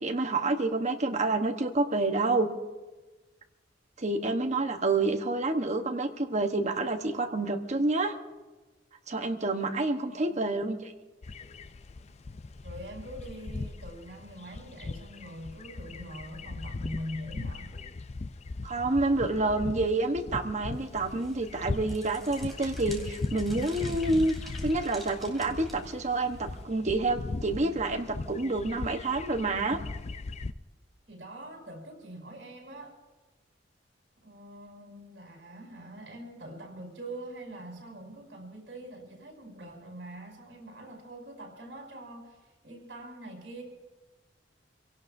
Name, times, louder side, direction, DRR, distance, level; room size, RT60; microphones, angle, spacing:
voice 1, 0.0-2.5 4.0-8.2 9.1-10.9 18.6-24.4 24.6-29.8, right 2 dB, 40° right, 5 dB, 1.1 m, -28 dB
voice 2, 10.0-10.4 12.6-17.7 31.1-32.9 34.2-43.6, right 1 dB, 75° right, 0 dB, 5.2 m, -44 dB
sound 1, 11.2-30.5, left 3 dB, 35° left, 0.4 m, -39 dB
sound 2, 20.7-26.6, right 1 dB, ahead, 2.8 m, -49 dB
27.0 x 17.5 x 2.7 m, 1.2 s
head